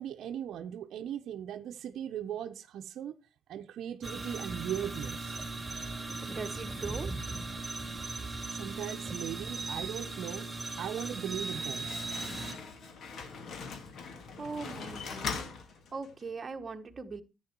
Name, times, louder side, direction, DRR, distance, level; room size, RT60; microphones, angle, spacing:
voice 1, 0.0-3.1 3.5-5.4 8.5-10.5 10.8-12.0, right 10 dB, 70° right, 0.8 m, -38 dB
sound 1, 4.0-12.5, right 3 dB, 10° right, 3.5 m, -38 dB
voice 2, 6.3-7.2 14.4-15.3 15.9-17.2, right 4 dB, 30° right, 1.2 m, -40 dB
Slam, 11.2-16.3, left 5 dB, 60° left, 2.2 m, -41 dB
10.5 x 8.9 x 4.5 m
cardioid pair, 100°, 0 cm